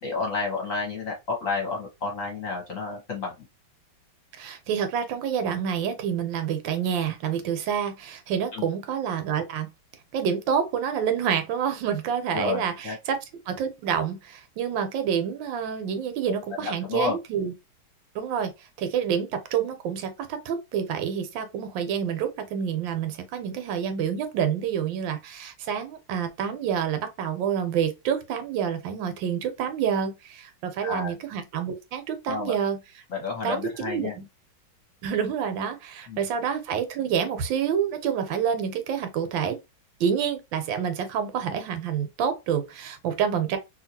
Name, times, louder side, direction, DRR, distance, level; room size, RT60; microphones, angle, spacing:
voice 1, 0.0-3.4 8.5-8.7 12.3-13.0 16.3-17.2 30.8-31.1 32.3-32.5 33.1-34.1 36.1-36.3, left 4 dB, 50° left, 1.1 m, -30 dB
voice 2, 4.4-9.7 10.1-13.2 13.5-17.5 18.1-18.5 18.8-32.8 33.4-34.2 35.0-39.6 40.0-43.6, right 8 dB, 80° right, 1.3 m, -28 dB
2.8 x 2.7 x 2.6 m
omnidirectional pair, 2.1 m